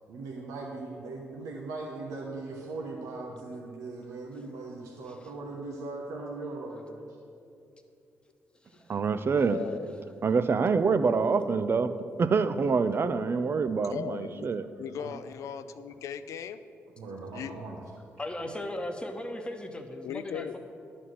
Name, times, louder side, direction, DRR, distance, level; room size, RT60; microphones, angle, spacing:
voice 1, 0.1-7.0 15.0-15.1 17.0-17.8, right 3 dB, 85° right, -2 dB, 0.9 m, -39 dB
voice 2, 8.9-9.6 10.2-14.7, right 5 dB, 50° right, 11 dB, 0.5 m, -26 dB
voice 3, 9.4-10.0 13.9-16.6 17.3-17.6 20.0-20.6, left 8 dB, 80° left, 12 dB, 0.4 m, -38 dB
voice 4, 18.2-20.6, left 1 dB, 20° left, 4 dB, 1.1 m, -37 dB
11.0 x 4.2 x 7.7 m, 2.6 s
supercardioid pair, 60°, 5 cm